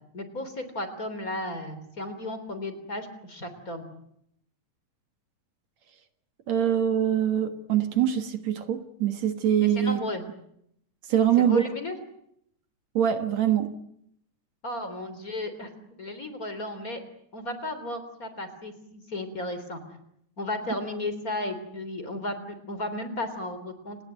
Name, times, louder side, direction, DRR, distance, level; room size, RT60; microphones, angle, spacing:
voice 1, 0.1-3.9 9.6-10.2 11.4-12.0 14.6-15.7 16.0-17.0 17.3-19.8 20.4-24.0, left 1 dB, 30° left, 10 dB, 3.8 m, -34 dB
voice 2, 6.5-10.0 11.1-11.7 12.9-13.7, right 10 dB, 65° right, 9 dB, 2.7 m, -24 dB
29.5 x 19.0 x 9.1 m, 0.73 s
omnidirectional pair, 3.4 m